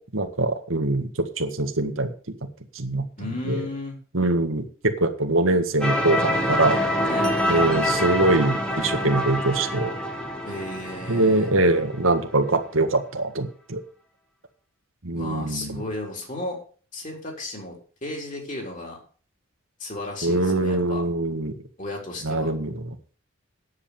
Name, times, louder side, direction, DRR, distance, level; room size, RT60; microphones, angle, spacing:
voice 1, 0.1-2.1 2.7-3.1 3.5-3.6 4.1-4.6 5.0-6.8 7.5-9.9 11.1-13.8 15.0-15.8 20.2-21.5 22.2-22.7, right 2 dB, 85° right, 6 dB, 1.8 m, -23 dB
voice 2, 3.2-4.0 7.1-7.3 10.4-11.5 15.1-16.6 16.9-17.7 18.0-19.0 19.8-21.0 21.8-22.5, left 2 dB, 40° left, 0 dB, 4.2 m, -34 dB
sound 1, 5.8-12.6, equal, 5° left, 1.6 m, -26 dB
9.8 x 8.3 x 7.0 m, 0.41 s
head